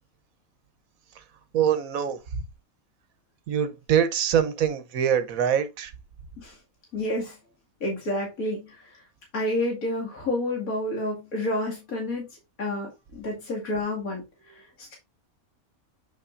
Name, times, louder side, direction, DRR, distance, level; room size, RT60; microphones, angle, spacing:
voice 1, 1.5-2.2 3.5-5.9, right 8 dB, 75° right, 1.3 m, -24 dB
voice 2, 6.9-7.3 7.8-8.7 9.3-12.3 12.6-14.2 14.8-14.9, left 1 dB, 70° left, 2.7 m, -29 dB
8.4 x 5.7 x 2.5 m
omnidirectional pair, 1.5 m